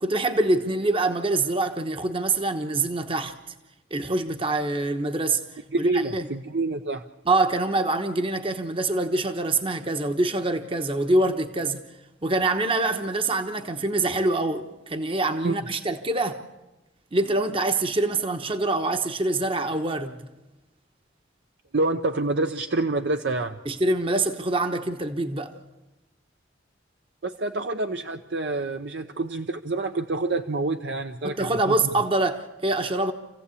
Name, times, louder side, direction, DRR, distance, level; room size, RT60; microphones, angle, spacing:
voice 1, 0.0-3.4 3.9-5.4 5.8-6.3 7.2-11.8 12.2-16.4 17.1-20.2 23.6-25.5 31.2-33.1, right 2 dB, 30° right, 1.1 m, -25 dB
voice 2, 5.7-7.0 15.4-15.6 21.7-23.6 27.2-31.8, right 2 dB, 65° right, 0.8 m, -27 dB
27.5 x 15.5 x 8.4 m
head